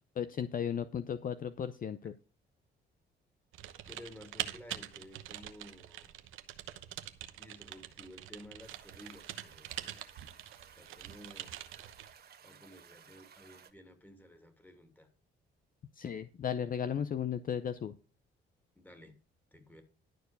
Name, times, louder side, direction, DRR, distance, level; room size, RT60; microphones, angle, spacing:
voice 1, 0.2-2.2 15.9-18.0, left 8 dB, 45° left, 12 dB, 0.6 m, -35 dB
Typing, 3.5-12.1, right 12 dB, 85° right, 1.0 m, -44 dB
voice 2, 3.9-6.2 7.4-10.1 10.7-11.5 12.4-15.1 18.8-19.2 19.5-19.8, equal, 10° left, 6 dB, 2.6 m, -54 dB
sound 1, 8.6-13.7, right 7 dB, 50° right, 1.3 m, -58 dB
11.5 x 4.5 x 6.9 m, 0.35 s
cardioid pair, 90°, 20 cm